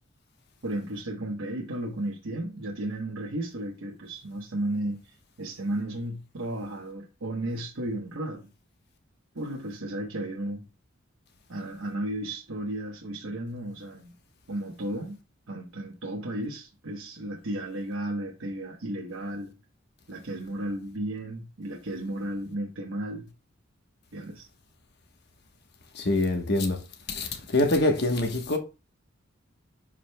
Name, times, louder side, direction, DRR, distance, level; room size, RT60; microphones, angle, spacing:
voice 1, 0.6-8.5 9.3-10.6 11.5-14.1 14.5-15.2 15.5-19.5 20.1-23.3 24.1-24.5, right 1 dB, 85° right, 1.1 m, -34 dB
voice 2, 25.9-26.8 27.1-28.6, left 2 dB, 55° left, 1.1 m, -25 dB
11.0 x 5.0 x 2.2 m
head